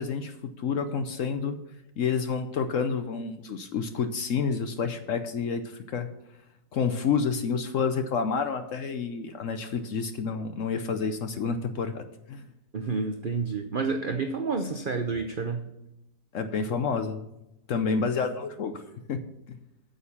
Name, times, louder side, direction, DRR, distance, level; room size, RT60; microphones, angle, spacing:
voice 1, 0.0-1.6 2.0-6.1 6.7-12.5 16.3-17.2 17.7-18.8 19.1-19.2 19.5-19.6, left 5 dB, 60° left, 8 dB, 0.9 m, -29 dB
voice 2, 12.7-15.7, right 4 dB, 85° right, 6 dB, 0.4 m, -29 dB
8.8 x 6.9 x 7.1 m, 0.88 s
omnidirectional pair, 1.9 m